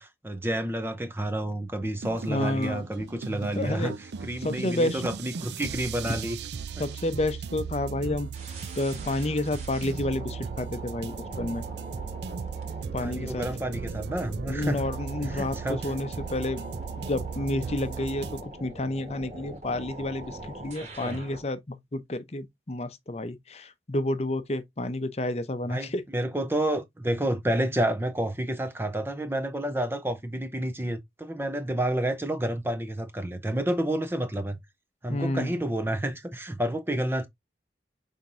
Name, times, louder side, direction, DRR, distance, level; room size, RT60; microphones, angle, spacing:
voice 1, 0.0-6.4 13.0-14.8 15.3-15.8 21.0-21.2 25.7-34.6 35.0-37.3, right 1 dB, 15° right, 0.6 m, -30 dB
sound 1, 1.8-18.4, right 6 dB, 70° right, 0.4 m, -37 dB
voice 2, 2.3-2.8 3.6-3.9 4.4-5.0 6.0-6.2 6.8-8.3 8.8-11.6 12.9-13.4 14.5-16.6 17.0-26.0 35.1-35.6, left 1 dB, 35° left, 0.6 m, -30 dB
sound 2, 8.3-21.5, right 1 dB, 40° right, 1.7 m, -42 dB
5.8 x 3.5 x 2.6 m
head